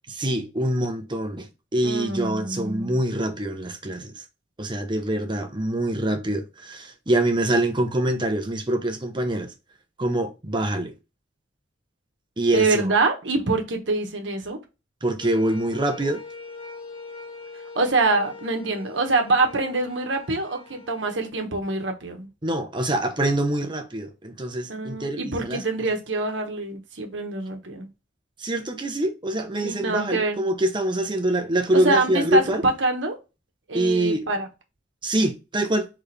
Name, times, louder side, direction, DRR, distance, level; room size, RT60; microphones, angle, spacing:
voice 1, 0.1-4.2 4.6-9.5 10.0-10.9 12.4-12.9 15.0-16.2 22.4-25.6 28.4-32.6 33.7-34.3 35.0-35.9, right 1 dB, 25° right, 0.9 m, -25 dB
voice 2, 1.8-3.0 12.5-14.6 17.7-22.3 24.7-27.9 29.6-30.4 31.7-33.2 33.7-34.5, right 3 dB, 80° right, 1.2 m, -25 dB
sound 1, 15.2-21.3, left 3 dB, 30° left, 1.1 m, -42 dB
4.2 x 3.5 x 3.3 m
head